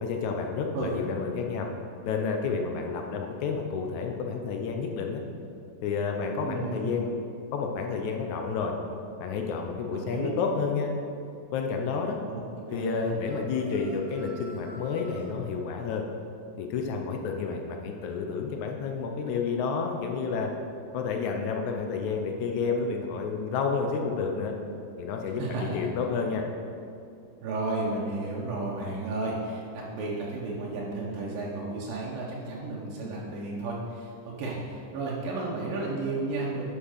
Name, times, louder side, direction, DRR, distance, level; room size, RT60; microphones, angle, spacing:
voice 1, 0.0-1.7 2.1-5.2 5.8-7.2 7.5-8.7 9.2-10.9 11.5-12.2 12.7-16.0 16.6-20.5 20.9-24.5 25.0-26.4, left 5 dB, 75° left, 2 dB, 1.8 m, -30 dB
voice 2, 6.4-7.0 9.9-10.3 12.3-13.1 25.4-25.8 27.4-36.7, right 2 dB, 80° right, -4 dB, 2.8 m, -33 dB
sound 1, 13.2-15.3, right 2 dB, 55° right, 2.1 m, -47 dB
9.8 x 5.3 x 6.5 m, 2.5 s
omnidirectional pair, 3.9 m